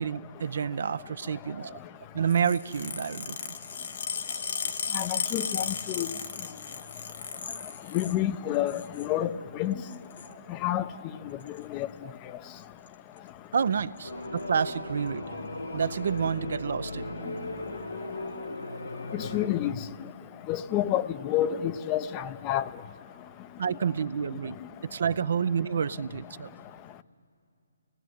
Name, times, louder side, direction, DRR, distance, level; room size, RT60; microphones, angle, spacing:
voice 1, 0.0-1.8 2.1-3.5 10.3-10.6 12.0-12.1 13.5-15.2 15.7-17.1 23.6-24.6 24.9-26.5, right 7 dB, 60° right, 0.6 m, -29 dB
sound 1, 2.3-8.2 8.5-9.1 9.8-10.3 11.4-11.6 12.6-12.9 13.2-13.3 13.6-13.7 14.0-14.4 15.1-15.2 16.1-16.2, left 6 dB, 60° left, 1.8 m, -35 dB
voice 2, 4.9-6.1 7.9-9.3 9.6-9.8 10.6-10.8 11.7-11.9 19.1-19.7 20.5-22.6, left 12 dB, 25° left, 0.6 m, -28 dB
sound 2, 14.0-19.5, left 2 dB, 85° left, 4.1 m, -37 dB
29.0 x 18.0 x 9.4 m
figure-of-eight pair, 140°, 0 cm